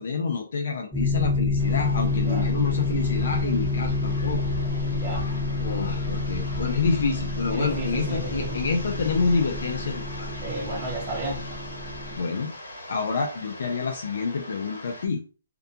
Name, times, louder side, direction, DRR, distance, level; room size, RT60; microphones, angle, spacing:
voice 1, 0.0-4.4 5.5-10.3 12.2-12.5 12.9-15.2, left 4 dB, 60° left, 0.4 m, -28 dB
sound 1, 0.9-12.2, left 3 dB, 5° left, 1.0 m, -28 dB
sound 2, 1.6-15.1, left 1 dB, 75° left, 1.0 m, -41 dB
voice 2, 4.8-5.2 7.5-8.6 10.4-11.4, right 2 dB, 25° right, 0.7 m, -33 dB
2.3 x 2.2 x 2.7 m
hypercardioid pair, 165°, 0 cm